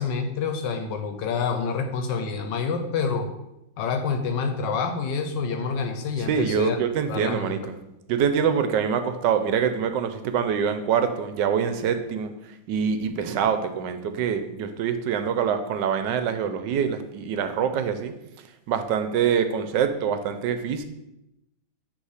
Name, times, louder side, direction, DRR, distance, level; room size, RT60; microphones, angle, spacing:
voice 1, 0.0-3.3 3.8-6.8 7.1-7.6, left 5 dB, 80° left, 6 dB, 1.4 m, -27 dB
voice 2, 6.3-7.8 8.1-12.3 12.7-18.1 18.7-20.8, right 7 dB, 80° right, 9 dB, 1.3 m, -25 dB
8.0 x 3.3 x 4.9 m, 0.89 s
omnidirectional pair, 1.9 m